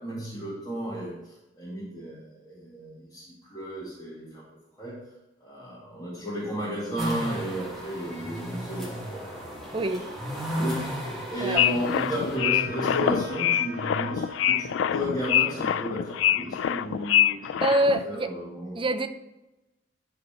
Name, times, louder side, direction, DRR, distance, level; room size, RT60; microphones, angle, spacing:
voice 1, 0.0-4.5 4.8-5.0 5.4-9.4 10.3-17.6 18.0-18.8, equal, 20° left, -9 dB, 2.0 m, -33 dB
sound 1, 7.0-12.4, equal, ahead, 1.7 m, -34 dB
voice 2, 9.7-10.1 11.4-11.6 17.6-18.3 18.8-19.1, right 1 dB, 25° right, 8 dB, 0.5 m, -25 dB
sound 2, 11.6-18.0, left 10 dB, 75° left, 0.3 m, -25 dB
Trumpet, 12.3-17.3, right 4 dB, 60° right, 0.8 m, -46 dB
10.5 x 4.0 x 4.8 m, 0.99 s
head